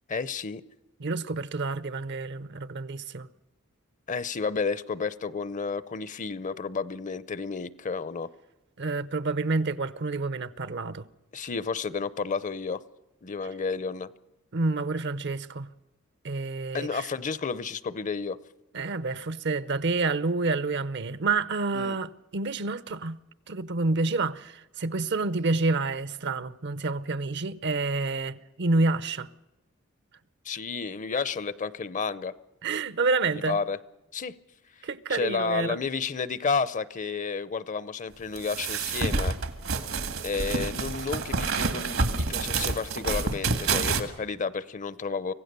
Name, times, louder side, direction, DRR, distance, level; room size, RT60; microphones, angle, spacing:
voice 1, 0.1-0.6 4.1-8.3 11.3-12.8 13.2-14.1 16.7-18.4 21.7-22.0 30.4-32.3 33.3-33.8 34.1-34.3 34.8-39.4 40.2-45.3, left 5 dB, 40° left, 0.6 m, -31 dB
voice 2, 1.0-3.3 8.8-11.0 14.5-15.7 16.2-17.1 18.7-23.2 23.5-29.3 32.6-33.6 34.8-35.8, right 3 dB, 60° right, 0.7 m, -28 dB
sound 1, 38.4-44.0, right 4 dB, 80° right, 1.8 m, -28 dB
25.5 x 16.5 x 6.8 m
head